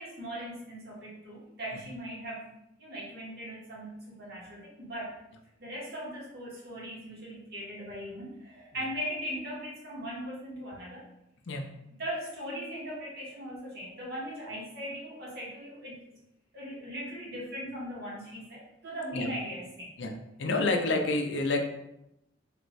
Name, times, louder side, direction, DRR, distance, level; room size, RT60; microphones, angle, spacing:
voice 1, 0.0-2.5 2.8-5.2 5.6-11.0 12.0-16.2 16.5-19.9, equal, 60° right, -6 dB, 1.3 m, -39 dB
voice 2, 20.4-21.6, left 2 dB, 70° left, 3 dB, 0.5 m, -28 dB
3.4 x 2.5 x 3.1 m, 0.84 s
head